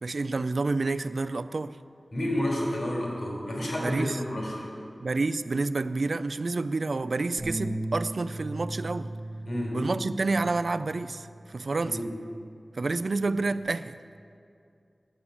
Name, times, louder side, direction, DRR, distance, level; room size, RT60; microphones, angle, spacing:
voice 1, 0.0-1.8 3.8-4.2 5.0-9.1 9.7-12.1 12.8-14.0, right 3 dB, 70° right, 0.4 m, -29 dB
voice 2, 2.1-4.7 9.5-9.8 11.8-12.0, left 1 dB, 65° left, 3.8 m, -30 dB
sound 1, 7.4-13.6, right 1 dB, 15° right, 3.1 m, -39 dB
10.0 x 8.6 x 8.4 m
wide cardioid pair, 75°, 0 cm